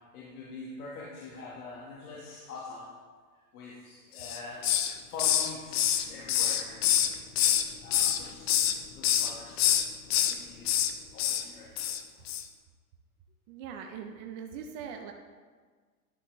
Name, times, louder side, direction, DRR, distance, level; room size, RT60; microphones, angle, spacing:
voice 1, 0.0-7.0 7.8-8.7 9.0-9.8 10.2-10.8 11.1-11.8, left 3 dB, 80° left, -4 dB, 1.5 m, -44 dB
Hiss, 4.2-4.9 5.2-7.6 7.9-8.7 9.0-9.3 9.6-10.3 10.6-10.9 11.2-11.4 11.8-12.0 12.3-12.4, left 11 dB, 45° left, 0.6 m, -26 dB
voice 2, 13.5-15.1, right 7 dB, 35° right, 3 dB, 0.5 m, -41 dB
11.0 x 5.7 x 3.1 m, 1.5 s
supercardioid pair, 145°, 44 cm